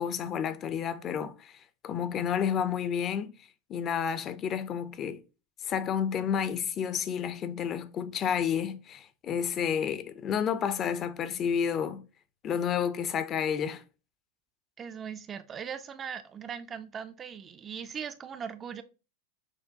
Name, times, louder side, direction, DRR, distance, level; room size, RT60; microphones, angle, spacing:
voice 1, 0.0-1.5 1.8-3.3 3.7-5.2 5.6-12.0 12.4-13.8, left 8 dB, 35° left, 0.5 m, -30 dB
voice 2, 14.8-18.8, right 7 dB, 25° right, 0.3 m, -39 dB
6.0 x 2.2 x 2.6 m
figure-of-eight pair, 85°, 0 cm